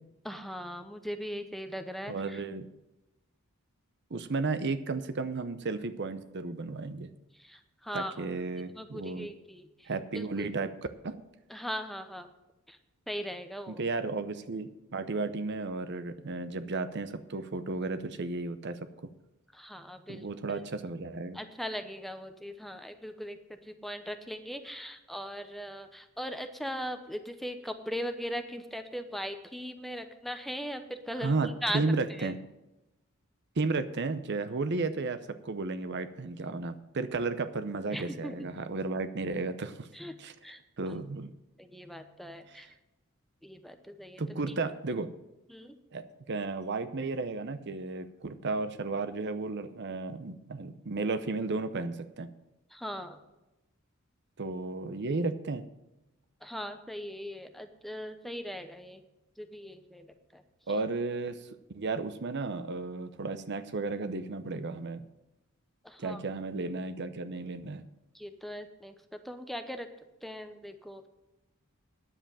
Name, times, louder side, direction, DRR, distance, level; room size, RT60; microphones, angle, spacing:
voice 1, 0.2-2.4 7.3-8.3 8.7-10.5 11.5-12.3 12.7-12.8 13.1-13.8 19.5-20.6 21.3-32.3 37.9-38.6 39.9-40.6 40.9-41.0 41.6-42.7 43.4-44.6 45.5-45.8 52.7-53.2 56.4-59.0 59.4-60.4 65.8-66.3 68.1-69.9 70.2-71.1, equal, ahead, 7 dB, 0.8 m, -39 dB
voice 2, 2.1-2.7 4.1-7.1 7.9-9.3 9.9-10.7 11.0-11.2 13.7-18.8 20.1-21.4 31.2-32.4 33.6-39.9 40.2-40.3 40.8-41.3 42.5-42.6 44.2-45.1 45.9-52.3 54.4-55.6 60.7-65.1 66.0-67.8, right 3 dB, 55° right, 11 dB, 0.7 m, -33 dB
10.0 x 7.8 x 7.2 m, 0.97 s
head